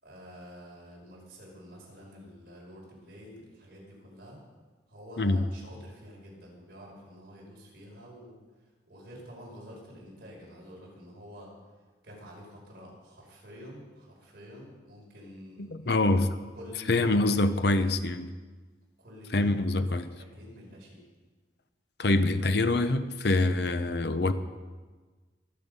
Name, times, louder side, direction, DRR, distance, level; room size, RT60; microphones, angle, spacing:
voice 1, 0.0-4.4 4.9-11.5 12.0-16.1 16.5-17.5 17.7-17.9 19.0-21.0, equal, 55° right, -3 dB, 5.5 m, -48 dB
voice 2, 15.6-16.3 16.9-18.3 19.3-20.1 22.0-24.3, left 2 dB, 60° left, 10 dB, 0.8 m, -25 dB
23.5 x 8.6 x 5.5 m, 1.4 s
head